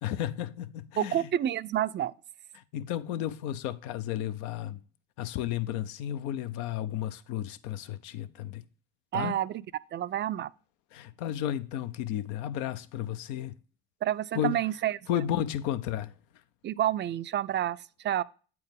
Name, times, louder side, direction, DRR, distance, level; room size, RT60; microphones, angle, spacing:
voice 1, 0.0-1.3 2.5-4.8 5.2-8.7 9.1-9.4 10.9-13.6 14.3-14.6 15.1-16.1, left 11 dB, 80° left, 0.6 m, -33 dB
voice 2, 1.0-2.1 9.1-9.6 9.9-10.5 14.0-15.0 16.6-17.8 18.0-18.2, right 11 dB, 40° right, 0.4 m, -29 dB
8.0 x 4.6 x 3.5 m
supercardioid pair, 70°, 30 cm